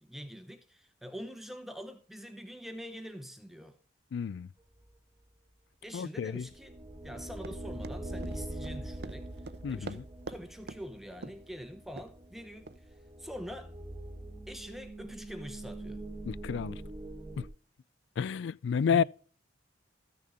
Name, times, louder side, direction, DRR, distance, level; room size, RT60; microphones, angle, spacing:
voice 1, 0.0-3.8 5.8-6.8 7.0-9.3 9.7-13.7 14.5-16.0 18.9-19.0, equal, ahead, 0.7 m, -44 dB
voice 2, 4.1-4.5 5.9-6.5 9.6-10.0 16.3-16.8 17.4-17.5 18.2-19.0, left 7 dB, 70° left, 0.3 m, -30 dB
sound 1, 6.4-17.5, right 1 dB, 20° right, 1.2 m, -43 dB
Run, 7.4-10.4 10.7-10.8 11.2-11.5 12.0-12.1 12.7-12.8, right 3 dB, 60° right, 0.6 m, -43 dB
14.0 x 6.7 x 3.6 m
head